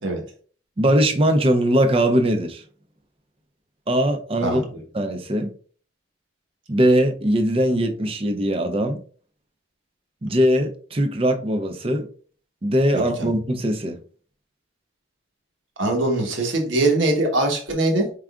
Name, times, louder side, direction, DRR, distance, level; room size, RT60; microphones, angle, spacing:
voice 1, 0.8-2.6 3.9-4.6 4.9-5.5 6.7-9.0 10.2-12.0 12.6-14.0, equal, 30° right, 0.5 m, -20 dB
voice 2, 4.4-4.8 12.9-13.3 15.8-18.1, right 2 dB, 80° right, 1.2 m, -22 dB
4.7 x 3.5 x 2.4 m
head